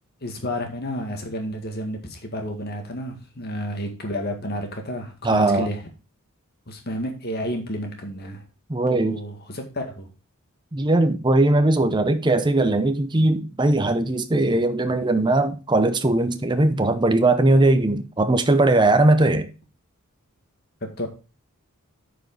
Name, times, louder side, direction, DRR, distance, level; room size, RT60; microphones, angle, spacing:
voice 1, 0.2-5.9 6.7-8.4 8.9-10.1 20.8-21.1, equal, 45° left, 1.9 m, -31 dB
voice 2, 5.2-5.7 8.7-9.2 10.7-19.5, right 2 dB, 20° right, 0.6 m, -19 dB
9.2 x 5.1 x 3.9 m
head